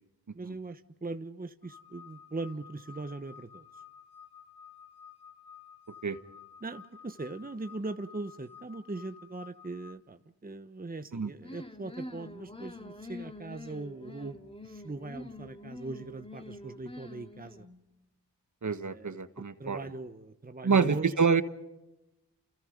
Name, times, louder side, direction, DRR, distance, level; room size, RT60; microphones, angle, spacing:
voice 1, 0.3-3.7 6.6-14.4 14.6-17.7 18.9-21.1, right 2 dB, 20° right, 9 dB, 1.2 m, -40 dB
sound 1, 1.6-9.9, left 7 dB, 60° left, 4.4 m, -53 dB
sound 2, 11.4-17.8, left 2 dB, 15° left, 2.4 m, -46 dB
voice 2, 18.6-19.8 20.6-21.4, right 5 dB, 40° right, 11 dB, 1.5 m, -27 dB
30.0 x 28.5 x 5.3 m, 0.99 s
cardioid pair, 40°, 44 cm